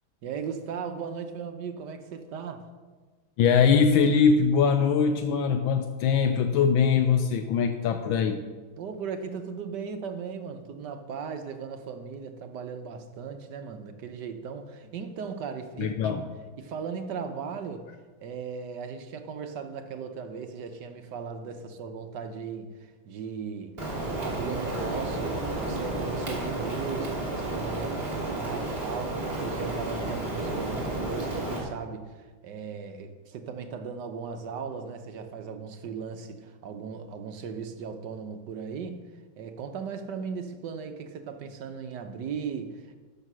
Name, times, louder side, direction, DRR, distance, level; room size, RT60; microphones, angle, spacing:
voice 1, 0.2-2.6 8.8-16.2 16.6-17.9 18.2-23.8 24.2-39.0 39.4-43.0, right 6 dB, 65° right, 1.4 m, -37 dB
voice 2, 3.4-8.4 15.8-16.2, left 6 dB, 80° left, 1.4 m, -22 dB
Rain, 23.8-31.6, right 2 dB, 30° right, 2.9 m, -31 dB
12.0 x 6.5 x 6.1 m
omnidirectional pair, 2.2 m